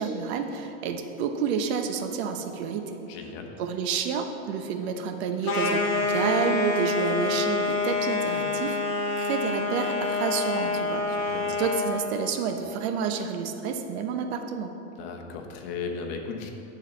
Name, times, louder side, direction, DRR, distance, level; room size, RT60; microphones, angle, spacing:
voice 1, 0.0-3.0 3.6-8.8 9.2-11.0 11.6-14.7, right 6 dB, 65° right, 6 dB, 0.9 m, -29 dB
voice 2, 3.1-3.5 11.1-11.6 15.0-16.5, left 5 dB, 60° left, 3 dB, 1.2 m, -36 dB
sound 1, 5.4-12.0, left 3 dB, 40° left, 1.5 m, -27 dB
10.5 x 4.0 x 6.9 m, 2.9 s
supercardioid pair, 160°, 34 cm